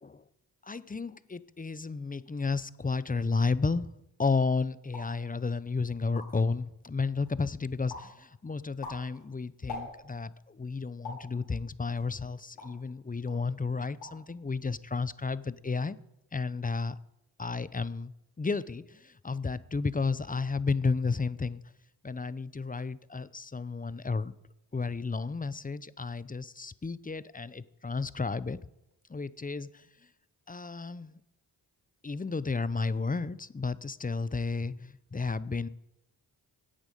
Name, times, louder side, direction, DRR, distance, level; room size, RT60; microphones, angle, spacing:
voice 1, 0.6-3.9 4.2-16.0 16.3-17.0 17.4-21.6 22.0-24.3 24.7-28.6 29.1-29.9 30.5-31.1 32.0-35.7, left 4 dB, 20° left, 0.6 m, -32 dB
sound 1, 4.9-5.2 5.7-5.8 6.0-6.5 7.0-7.5 7.9-8.2 8.6-10.3 11.0-11.3 11.9-12.9 13.3-13.5 13.8-14.3 14.5-15.0, left 3 dB, 80° left, 5.4 m, -44 dB
16.5 x 8.9 x 5.3 m
supercardioid pair, 40°, 48 cm